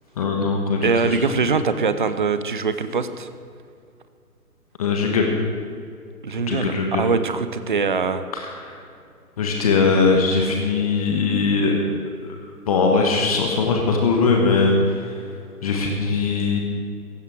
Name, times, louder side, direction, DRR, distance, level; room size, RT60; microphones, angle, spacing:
voice 1, 0.2-0.9 4.8-5.3 6.5-7.0 8.6-8.7 9.4-11.8 12.7-14.7 15.6-16.6, left 4 dB, 25° left, 1 dB, 1.4 m, -20 dB
voice 2, 0.8-3.3 6.2-8.2, right 5 dB, 35° right, 11 dB, 0.6 m, -23 dB
17.5 x 15.5 x 4.7 m, 2.3 s
figure-of-eight pair, 140°, 46 cm